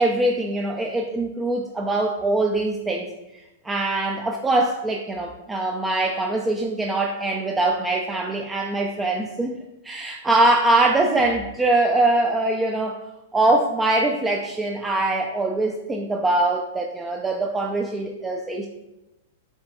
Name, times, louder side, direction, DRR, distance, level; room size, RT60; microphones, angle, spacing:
voice 1, 0.0-3.1 3.6-9.6 9.8-13.0 13.3-18.7, right 2 dB, 10° right, 1 dB, 0.3 m, -22 dB
5.4 x 3.4 x 2.2 m, 0.97 s
figure-of-eight pair, 100°, 0 cm